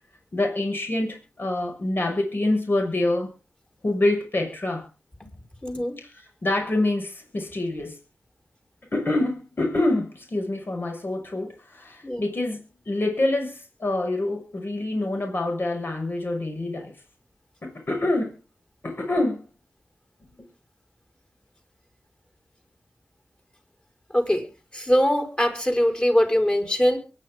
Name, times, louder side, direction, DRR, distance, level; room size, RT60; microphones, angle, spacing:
voice 1, 0.3-3.3 3.8-4.9 6.0-8.0 8.9-16.9 17.6-18.4 18.8-19.5 20.4-20.5, left 2 dB, 55° left, 2 dB, 6.1 m, -26 dB
voice 2, 5.6-6.0 12.0-12.3 24.1-24.5 24.7-27.0, equal, 25° left, 4 dB, 5.5 m, -22 dB
23.5 x 9.9 x 3.8 m, 0.33 s
cardioid pair, 40°, 4 cm